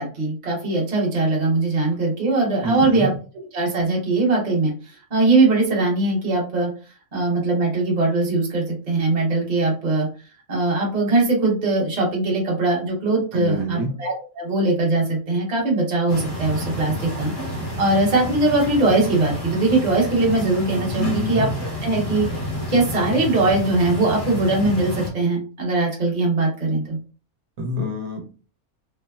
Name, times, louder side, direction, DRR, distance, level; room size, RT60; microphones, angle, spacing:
voice 1, 0.0-3.1 3.5-6.7 7.1-10.1 10.5-22.3 22.7-27.0, right 2 dB, 35° right, -2 dB, 0.9 m, -21 dB
voice 2, 2.6-3.1 13.3-13.9 21.0-21.5 27.6-28.2, equal, 80° right, 3 dB, 1.1 m, -26 dB
sound 1, 16.1-25.1, left 1 dB, 30° left, 0.5 m, -30 dB
3.2 x 2.0 x 2.2 m, 0.36 s
omnidirectional pair, 1.5 m